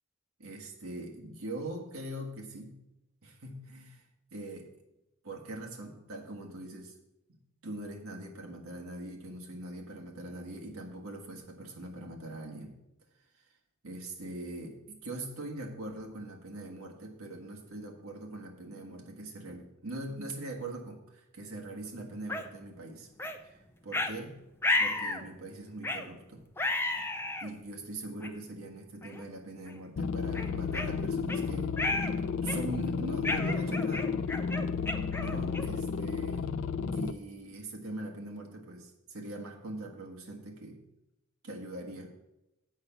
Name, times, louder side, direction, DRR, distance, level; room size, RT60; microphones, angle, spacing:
voice 1, 0.4-2.8 3.2-4.0 4.3-4.7 5.2-6.9 7.3-12.7 13.8-23.1 23.4-23.6 23.8-24.4 24.8-26.4 27.4-31.7 32.4-34.1 35.2-36.5 36.9-40.8 41.4-42.1, right 1 dB, 85° right, 1 dB, 1.6 m, -42 dB
sound 1, 22.3-22.4 23.2-23.4 23.9-24.1 24.6-25.2 25.8-26.1 26.6-27.5 28.2-28.3 29.0-29.2 29.7-29.8 30.3-31.4 31.8-32.1 32.5-32.8 33.2-35.8, left 2 dB, 10° left, 0.6 m, -32 dB
sound 2, 30.0-37.1, left 5 dB, 70° left, 0.5 m, -32 dB
8.2 x 5.8 x 6.7 m, 0.90 s
head